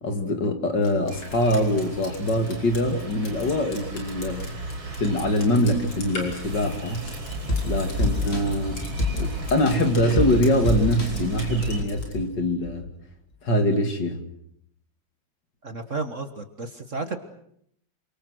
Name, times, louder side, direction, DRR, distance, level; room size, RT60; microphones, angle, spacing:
voice 1, 0.0-4.5 5.0-7.1 7.6-8.8 9.1-12.9 13.4-14.2, left 1 dB, 55° left, 6 dB, 3.0 m, -23 dB
Drip, 0.8-12.1, left 1 dB, 80° left, 6.7 m, -40 dB
sound 1, 1.1-11.8, right 1 dB, 75° right, 5.1 m, -36 dB
sound 2, 7.1-12.3 12.6-12.7, left 2 dB, 30° left, 4.1 m, -28 dB
voice 2, 15.6-17.2, right 3 dB, 40° right, 8 dB, 1.7 m, -33 dB
28.0 x 25.5 x 6.3 m, 0.70 s
omnidirectional pair, 2.3 m